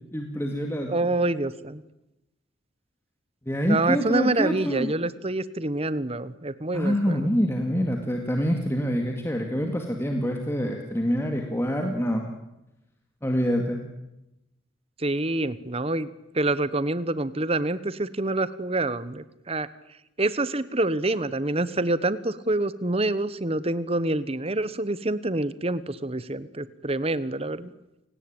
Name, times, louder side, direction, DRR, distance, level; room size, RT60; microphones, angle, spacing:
voice 1, 0.1-1.1 3.5-4.9 6.7-12.2 13.2-13.8, equal, 10° left, 3 dB, 2.1 m, -26 dB
voice 2, 0.9-1.8 3.6-7.3 15.0-16.1 16.3-19.7 20.2-27.7, right 2 dB, 30° right, 16 dB, 1.0 m, -27 dB
29.5 x 18.5 x 8.8 m, 0.93 s
head